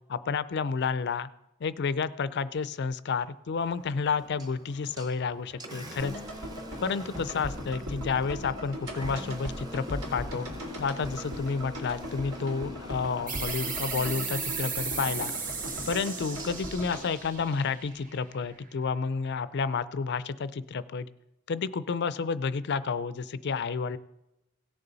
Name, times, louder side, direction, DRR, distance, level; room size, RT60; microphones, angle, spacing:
voice 1, 0.1-1.3 1.6-6.1 6.8-10.5 10.8-15.3 15.9-21.1 21.5-24.0, left 5 dB, 50° left, 15 dB, 0.4 m, -30 dB
Engine, 3.5-17.6, left 1 dB, 20° right, 0.8 m, -45 dB
sound 1, 6.0-18.2 18.4-18.5, equal, 85° right, 3.4 m, -39 dB
sound 2, 13.3-18.5, right 5 dB, 40° right, 1.3 m, -36 dB
17.0 x 6.8 x 4.0 m, 0.90 s
head